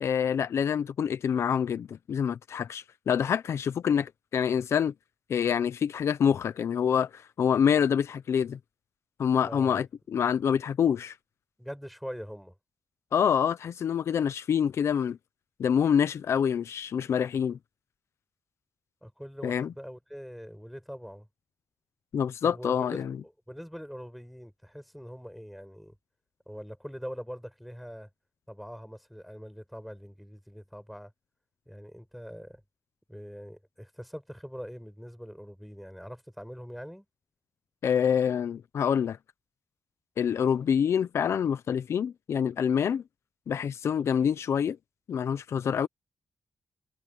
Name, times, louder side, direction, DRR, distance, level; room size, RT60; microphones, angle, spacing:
voice 1, 0.0-4.9 5.3-8.6 9.2-11.1 13.1-15.2 15.6-17.6 19.4-19.7 22.1-23.2 37.8-39.2 40.2-43.0 43.5-44.8 45.1-45.9, left 8 dB, 75° left, 0.9 m, -26 dB
voice 2, 9.5-9.9 11.6-12.5 19.0-21.3 22.4-26.0 26.5-28.1 28.5-31.1 31.7-32.6 33.1-37.1, equal, ahead, 5.3 m, -43 dB
cardioid pair, 65°, 5 cm